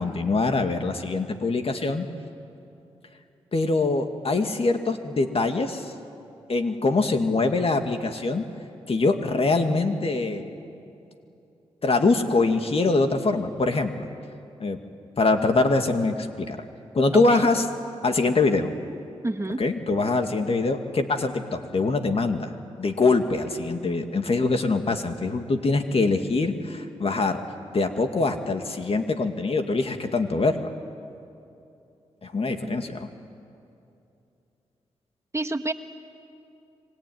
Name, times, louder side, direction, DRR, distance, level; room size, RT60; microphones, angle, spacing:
voice 1, 0.0-2.1 3.5-5.9 6.5-8.4 8.9-10.5 11.8-14.1 14.6-14.8 15.2-16.6 16.9-17.7 18.0-18.7 19.6-22.5 22.8-27.4 27.7-30.7 32.2-33.1, left 3 dB, 55° left, 6 dB, 2.4 m, -23 dB
voice 2, 17.1-17.5 19.2-19.6 32.6-32.8 35.3-35.7, right 2 dB, 25° right, 7 dB, 1.6 m, -29 dB
25.5 x 23.5 x 9.6 m, 2.7 s
supercardioid pair, 45°, 12 cm